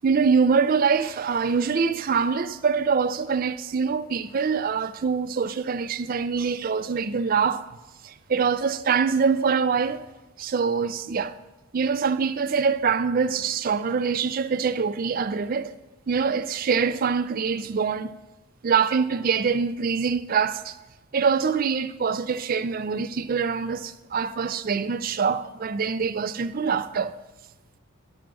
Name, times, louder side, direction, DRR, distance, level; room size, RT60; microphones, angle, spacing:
voice 1, 0.0-7.6 8.0-10.0 10.4-11.3 11.7-15.7 16.1-18.1 18.6-20.7 21.1-27.1, right 5 dB, 40° right, 0.3 m, -24 dB
10.5 x 6.1 x 6.0 m
head